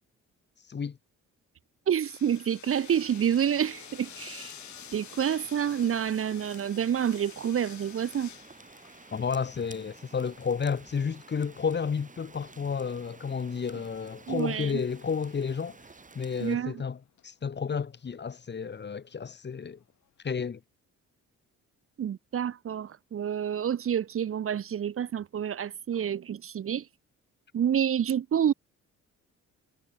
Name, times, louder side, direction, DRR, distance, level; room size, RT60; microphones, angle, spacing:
voice 1, 1.9-4.5 4.9-8.3 14.3-14.8 16.4-16.7 22.0-26.9 27.5-28.5, right 9 dB, 45° right, 1.0 m, -28 dB
sound 1, 2.0-13.4 16.7-17.3 18.4-18.5, left 11 dB, 70° left, 3.4 m, -50 dB
sound 2, 2.9-16.6, right 4 dB, 25° right, 5.3 m, -52 dB
voice 2, 9.1-15.8 16.2-19.8 20.2-20.6, left 6 dB, 35° left, 1.8 m, -31 dB
cardioid pair, 90°, 30 cm